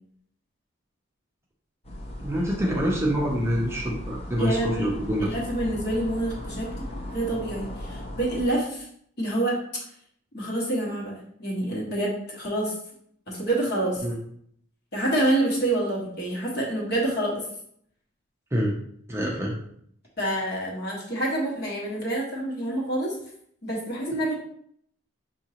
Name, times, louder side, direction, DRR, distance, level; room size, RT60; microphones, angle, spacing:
sound 1, 1.8-8.5, left 1 dB, 30° left, 0.7 m, -37 dB
voice 1, 2.2-5.3 14.0-14.2 18.5-18.8 19.1-19.5, equal, 15° right, -2 dB, 0.5 m, -26 dB
voice 2, 4.4-4.9 5.2-6.9 7.1-8.9 9.2-9.6 10.3-12.7 13.3-14.0 14.9-17.5 20.2-23.1 23.6-24.3, right 1 dB, 50° left, -4 dB, 1.4 m, -27 dB
6.0 x 2.7 x 2.9 m, 0.67 s
head